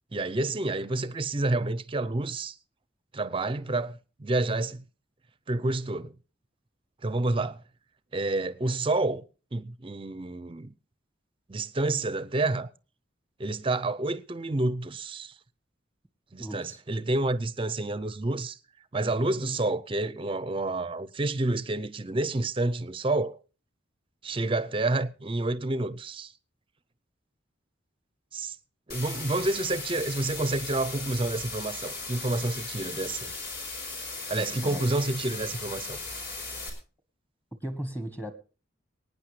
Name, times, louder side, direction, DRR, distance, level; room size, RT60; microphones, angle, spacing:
voice 1, 0.1-2.6 3.1-4.8 5.5-6.1 7.0-7.6 8.1-9.2 9.5-10.7 11.5-12.7 13.4-15.3 16.3-18.6 18.9-23.4 24.2-26.3 28.3-28.6 28.9-33.3 34.3-36.0, right 2 dB, 30° right, 0.6 m, -29 dB
voice 2, 16.4-16.8 19.0-19.3 34.4-34.8 37.6-38.3, right 1 dB, 10° left, 1.3 m, -37 dB
sound 1, 28.9-36.7, left 3 dB, 55° left, 4.3 m, -37 dB
24.0 x 9.4 x 3.2 m
head